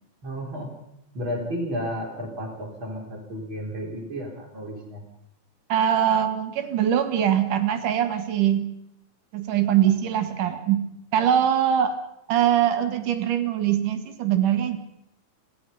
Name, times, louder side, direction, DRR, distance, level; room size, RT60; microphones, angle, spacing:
voice 1, 0.2-0.7 1.1-5.0, equal, 40° right, -1 dB, 5.1 m, -32 dB
voice 2, 5.7-8.7 9.3-10.8 11.1-12.0 12.3-14.8, right 10 dB, 85° right, 8 dB, 3.1 m, -22 dB
27.0 x 17.5 x 5.5 m, 0.77 s
omnidirectional pair, 3.6 m